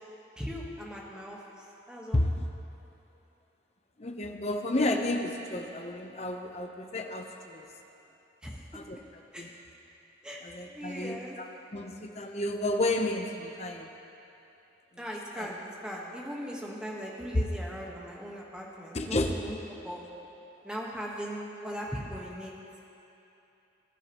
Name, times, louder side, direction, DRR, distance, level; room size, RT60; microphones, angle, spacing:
voice 1, 0.4-2.2 8.4-8.6 9.3-9.6 10.2-10.4 10.7-11.4 15.0-19.6 19.8-20.0 20.6-22.5, equal, 5° right, -3 dB, 1.3 m, -39 dB
voice 2, 2.1-2.4 4.0-7.7 8.7-9.0 9.4-9.5 10.4-11.5 11.7-13.9 15.4-15.5 17.3-17.4 18.9-19.3, left 1 dB, 35° left, 3 dB, 0.8 m, -31 dB
20.5 x 11.0 x 3.0 m, 3.0 s
head